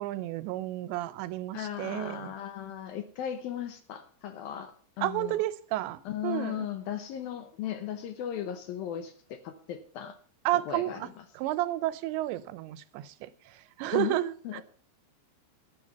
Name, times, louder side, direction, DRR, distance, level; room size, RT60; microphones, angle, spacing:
voice 1, 0.0-2.3 5.0-6.7 10.5-11.1 11.4-14.6, right 15 dB, 90° right, 3.0 m, -32 dB
voice 2, 1.5-5.4 6.1-10.2 10.5-11.2 13.8-14.2 14.4-14.6, left 10 dB, 75° left, 2.3 m, -37 dB
11.0 x 10.0 x 5.5 m
omnidirectional pair, 5.0 m